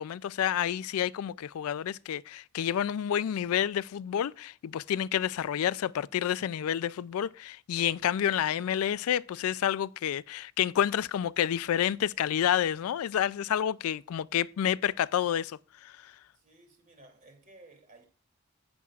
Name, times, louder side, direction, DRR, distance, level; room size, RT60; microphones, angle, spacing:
voice 1, 0.0-16.1, left 10 dB, 80° left, 0.3 m, -29 dB
voice 2, 16.3-18.0, right 2 dB, 35° right, 2.8 m, -56 dB
17.0 x 7.1 x 2.4 m
head